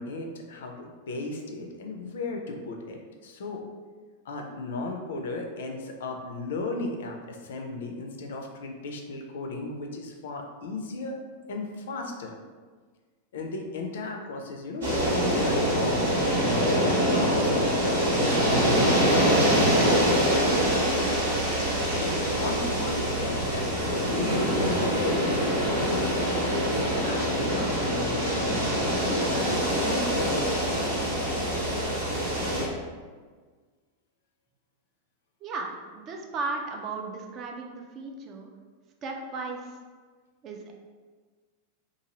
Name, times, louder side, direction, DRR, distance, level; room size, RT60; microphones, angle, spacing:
voice 1, 0.0-3.6 4.2-11.2 11.5-12.3 13.3-20.9 22.0-30.4, left 3 dB, 60° left, 2 dB, 0.4 m, -35 dB
sound 1, 14.8-32.6, equal, 70° right, 0.9 m, -24 dB
voice 2, 35.4-38.5 39.0-39.7 40.4-40.7, right 3 dB, 35° right, 2 dB, 0.4 m, -35 dB
2.7 x 2.5 x 2.9 m, 1.5 s
figure-of-eight pair, 90°, 0 cm